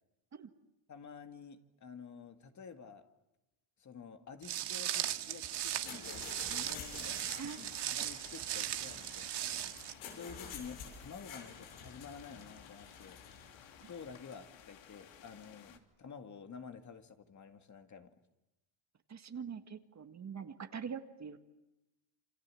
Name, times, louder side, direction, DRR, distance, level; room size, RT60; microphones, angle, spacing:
voice 1, 0.9-3.1 3.8-7.3 7.6-9.7 10.1-13.2 13.8-18.1, left 6 dB, 35° left, 2.2 m, -50 dB
Walk footsteps, 4.4-9.9, right 12 dB, 60° right, 1.8 m, -38 dB
sound 1, 5.5-14.2, left 6 dB, 85° left, 7.5 m, -50 dB
sound 2, 6.8-15.8, left 8 dB, 65° left, 3.0 m, -57 dB
voice 2, 7.4-7.9 13.8-13.9 19.1-21.4, right 6 dB, 35° right, 1.8 m, -44 dB
28.0 x 26.5 x 7.7 m
cardioid pair, 120°, 47 cm